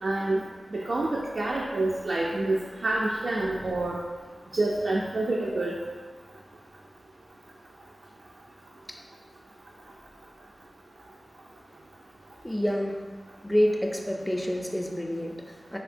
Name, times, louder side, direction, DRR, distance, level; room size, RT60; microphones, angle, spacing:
voice 1, 0.0-0.4 0.7-4.0 4.5-5.8, right 2 dB, 80° right, -3 dB, 0.3 m, -27 dB
voice 2, 12.4-13.0 13.4-15.8, equal, 10° left, 1 dB, 0.4 m, -28 dB
3.6 x 2.7 x 2.5 m, 1.4 s
wide cardioid pair, 60°, 0 cm